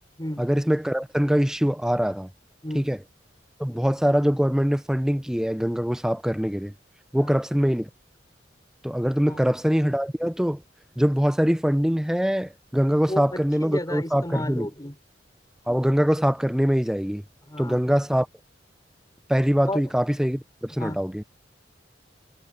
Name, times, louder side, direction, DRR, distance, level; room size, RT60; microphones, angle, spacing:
voice 1, 0.4-2.3 2.7-3.0 3.6-6.7 7.1-7.9 8.8-10.6 11.0-14.7 15.7-17.2 17.6-18.3 19.3-21.2, equal, 5° right, 0.5 m, -23 dB
voice 2, 13.1-15.0 17.5-17.8 19.7-19.8 20.8-21.0, left 1 dB, 20° left, 5.2 m, -32 dB
head